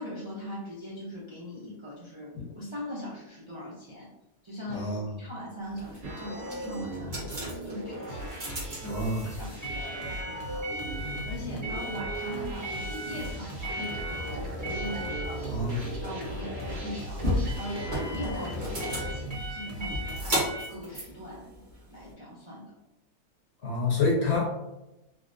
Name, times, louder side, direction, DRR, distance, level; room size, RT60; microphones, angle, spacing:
voice 1, 0.0-4.1 4.4-21.5 21.9-22.7, left 1 dB, 50° right, -7 dB, 0.3 m, -40 dB
voice 2, 4.7-5.0 8.8-9.2 15.5-15.9 23.6-24.5, left 3 dB, 55° left, -3 dB, 0.8 m, -27 dB
sound 1, 5.7-22.1, equal, 35° right, 1.0 m, -36 dB
sound 2, 6.0-19.4, right 1 dB, 75° right, 1.5 m, -39 dB
sound 3, 8.1-20.5, equal, 80° left, 1.1 m, -41 dB
3.7 x 2.0 x 2.5 m, 0.93 s
omnidirectional pair, 1.6 m